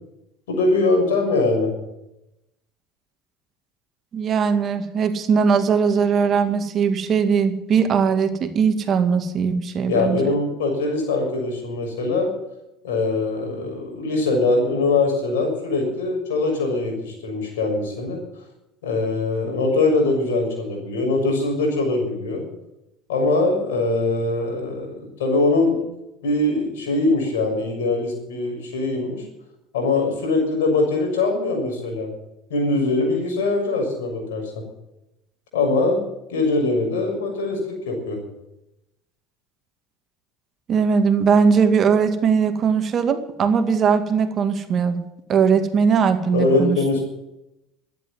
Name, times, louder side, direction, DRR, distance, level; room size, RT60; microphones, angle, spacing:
voice 1, 0.5-1.7 9.9-12.3 12.8-18.2 18.8-22.5 23.1-25.8 26.2-29.2 29.7-32.1 32.5-34.5 35.5-36.0 36.3-38.2 46.3-47.0, left 3 dB, 90° left, 1 dB, 6.5 m, -22 dB
voice 2, 4.1-10.3 40.7-45.0 45.3-46.8, right 6 dB, 45° right, 8 dB, 2.1 m, -19 dB
12.5 x 10.5 x 9.7 m, 0.88 s
supercardioid pair, 85°, 0 cm